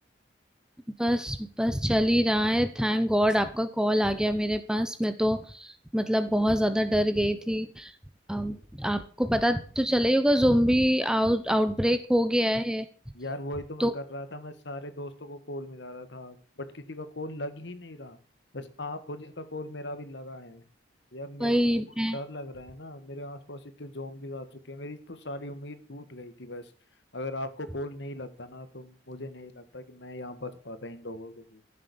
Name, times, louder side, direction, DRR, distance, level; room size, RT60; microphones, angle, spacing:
voice 1, 1.0-7.9 8.3-12.9 13.8-13.9 21.4-22.2, equal, 5° right, 11 dB, 0.8 m, -25 dB
voice 2, 13.1-18.2 18.5-20.6 21.1-21.5 22.1-26.7 27.1-31.6, left 1 dB, 65° left, 12 dB, 1.6 m, -39 dB
14.5 x 7.5 x 7.0 m, 0.40 s
head